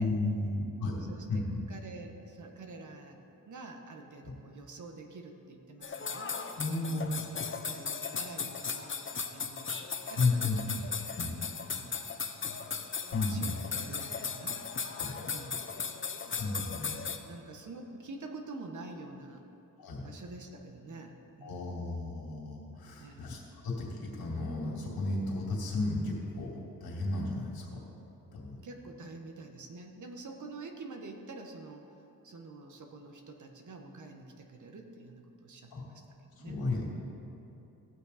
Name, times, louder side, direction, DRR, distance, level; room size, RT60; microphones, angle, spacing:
voice 1, 0.0-1.0 1.3-1.6 4.2-4.3 6.6-7.1 10.2-10.6 11.2-11.5 13.1-13.6 15.0-15.1 16.4-16.9 19.8-20.1 21.4-27.8 28.3-28.6 35.7-35.8 36.4-36.9, left 2 dB, 80° left, -3 dB, 2.6 m, -33 dB
voice 2, 1.1-6.4 6.7-9.0 9.3-10.7 11.7-12.2 13.3-14.6 15.3-15.6 16.1-16.5 16.8-19.4 20.0-21.7 23.0-23.3 28.6-31.9 32.2-36.0 36.3-36.7, right 3 dB, 55° right, 4 dB, 1.3 m, -47 dB
sound 1, 5.8-17.2, left 5 dB, 35° left, 0.8 m, -37 dB
17.5 x 6.3 x 4.2 m, 3.0 s
cardioid pair, 75°, 36 cm